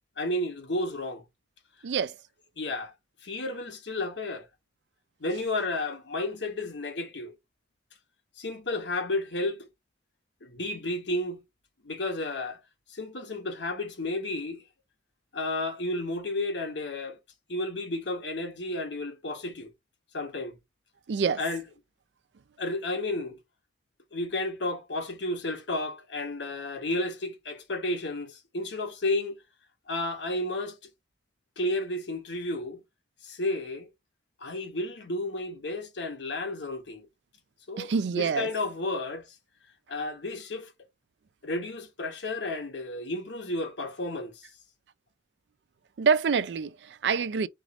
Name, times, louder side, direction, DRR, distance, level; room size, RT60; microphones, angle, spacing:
voice 1, 0.2-1.2 2.6-2.9 3.2-4.5 5.2-7.3 8.4-9.7 10.4-11.4 11.8-12.6 12.9-14.6 15.3-17.2 17.5-19.7 20.1-20.6 21.4-21.6 22.6-23.4 24.1-29.4 29.9-30.8 31.6-32.8 33.2-33.9 34.4-37.1 37.7-39.3 39.9-40.7 41.4-44.4, left 2 dB, 80° left, 1.1 m, -32 dB
voice 2, 1.8-2.2 21.1-21.4 37.8-38.5 46.0-47.5, right 5 dB, 70° right, 0.4 m, -26 dB
4.7 x 2.5 x 4.1 m
head